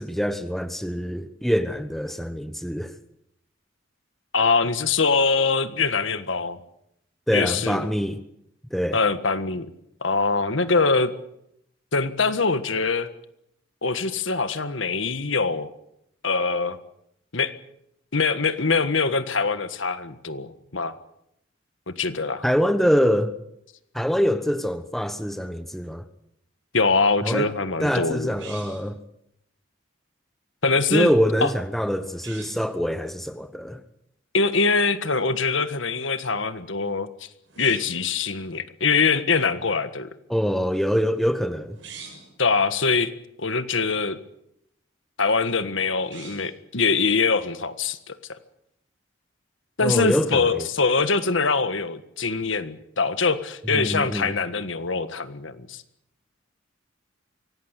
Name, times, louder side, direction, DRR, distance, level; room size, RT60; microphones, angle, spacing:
voice 1, 0.0-2.9 7.3-8.2 8.7-9.0 22.4-23.3 23.9-26.0 27.2-27.5 27.8-29.0 30.9-33.8 40.3-41.8 49.8-50.7 53.7-54.3, equal, ahead, 1.1 m, -24 dB
voice 2, 4.3-6.6 7.3-7.9 8.9-9.7 10.0-11.1 11.9-13.1 13.8-15.7 16.2-16.8 17.3-17.5 18.1-21.0 21.9-22.4 26.7-28.4 30.6-31.1 31.4-31.5 34.3-37.1 37.6-40.1 42.4-43.1 43.4-44.2 45.2-48.4 49.8-55.8, left 4 dB, 70° left, 1.6 m, -23 dB
sound 1, 28.3-29.0 32.1-32.7 37.4-38.1 41.7-42.3 45.9-46.6, right 5 dB, 65° right, 7.0 m, -43 dB
25.0 x 17.5 x 8.3 m
head